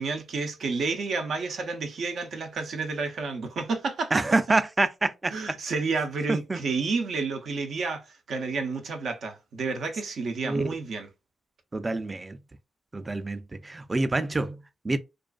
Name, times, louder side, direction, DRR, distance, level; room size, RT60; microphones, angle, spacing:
voice 1, 0.0-4.2 5.3-8.0 8.3-11.1, right 4 dB, 70° right, 0.6 m, -30 dB
voice 2, 4.1-5.3 6.3-6.6 10.4-10.7 11.7-12.4 12.9-15.0, right 2 dB, 30° right, 0.3 m, -27 dB
2.4 x 2.3 x 2.3 m
cardioid pair, 60°, 0 cm